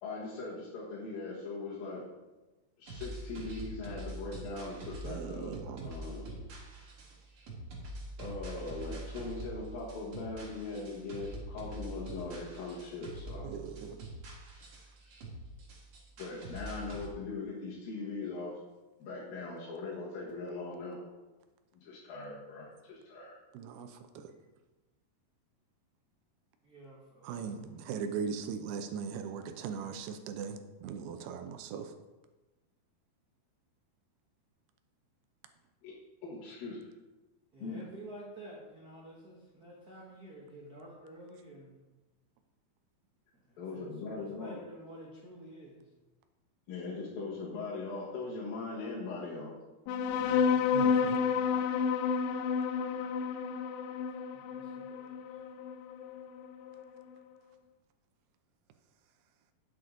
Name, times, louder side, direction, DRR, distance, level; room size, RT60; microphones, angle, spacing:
voice 1, 0.0-2.0 2.8-5.5 5.8-6.4 8.2-13.5 16.2-18.6 19.0-21.0 21.8-23.3 35.8-35.9 36.2-36.8 37.6-37.9 43.6-44.6 46.7-49.5, left 3 dB, 70° left, -7 dB, 3.2 m, -40 dB
sound 1, 2.9-17.1, right 1 dB, 45° right, 2.0 m, -45 dB
voice 2, 5.0-5.9 13.4-14.0 23.5-23.9 27.2-31.9 50.7-51.2, right 6 dB, 90° right, 7 dB, 2.7 m, -39 dB
voice 3, 26.6-27.4 37.5-41.8 43.5-45.9 50.1-50.7 54.3-55.1, right 1 dB, 70° right, -5 dB, 0.9 m, -50 dB
sound 2, 49.9-56.8, left 6 dB, 90° left, 2.5 m, -30 dB
9.4 x 7.8 x 3.8 m, 1.1 s
omnidirectional pair, 4.4 m